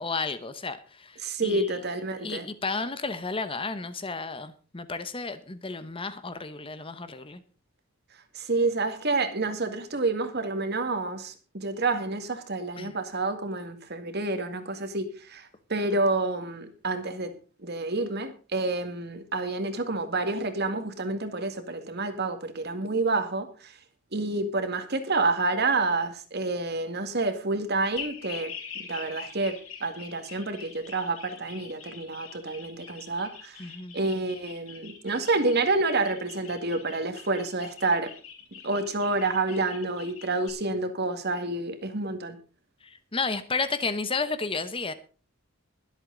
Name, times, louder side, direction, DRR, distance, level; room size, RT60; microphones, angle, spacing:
voice 1, 0.0-1.7 2.2-7.4 12.8-12.9 33.6-33.9 42.8-44.9, left 4 dB, 25° left, 1.0 m, -32 dB
voice 2, 1.2-2.5 8.4-17.3 17.6-23.7 24.1-28.5 28.8-33.6 33.9-38.1 38.6-42.4, right 3 dB, 55° right, 2.1 m, -28 dB
sound 1, 28.0-40.5, left 7 dB, 85° left, 5.2 m, -44 dB
22.0 x 8.1 x 3.9 m
head